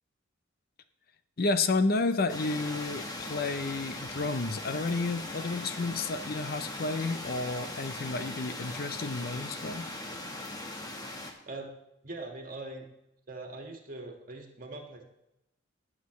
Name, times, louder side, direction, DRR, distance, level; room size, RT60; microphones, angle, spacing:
voice 1, 1.4-9.9, left 3 dB, 50° left, 11 dB, 0.6 m, -31 dB
sound 1, 2.3-11.3, left 2 dB, 20° left, 1.2 m, -39 dB
voice 2, 12.0-12.9 13.3-15.0, right 2 dB, 45° right, 2 dB, 1.8 m, -41 dB
18.5 x 7.4 x 3.2 m, 0.86 s
head